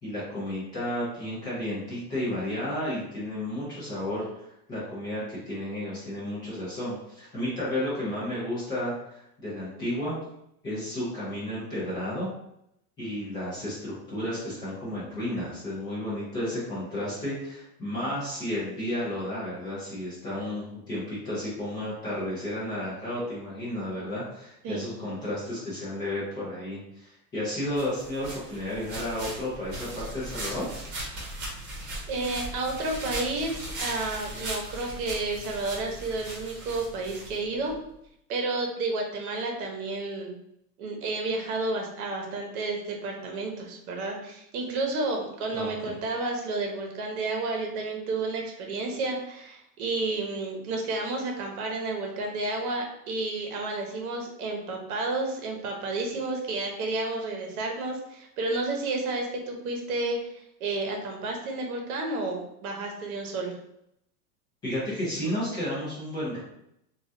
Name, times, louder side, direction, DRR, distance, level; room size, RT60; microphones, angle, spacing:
voice 1, 0.0-4.2 4.7-10.2 10.6-12.3 13.0-30.7 45.5-46.0 64.6-66.4, left 1 dB, 10° left, -9 dB, 0.3 m, -32 dB
sound 1, 27.7-37.8, right 1 dB, 40° right, 1.4 m, -38 dB
voice 2, 32.1-37.7 38.3-40.4 40.8-60.2 60.6-63.5, right 2 dB, 65° right, 2 dB, 1.0 m, -31 dB
3.1 x 2.4 x 2.6 m, 0.78 s
supercardioid pair, 150°, 48 cm